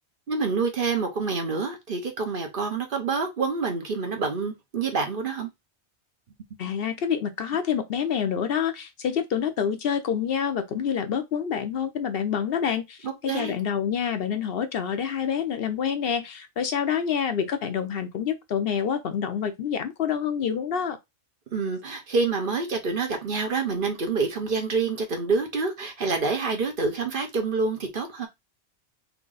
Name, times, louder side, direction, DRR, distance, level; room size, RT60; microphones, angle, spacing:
voice 1, 0.3-5.5 13.0-13.6 21.5-28.3, right 4 dB, 50° right, 1.1 m, -27 dB
voice 2, 6.6-21.0, left 8 dB, 65° left, 0.7 m, -27 dB
3.5 x 3.1 x 3.8 m
omnidirectional pair, 1.2 m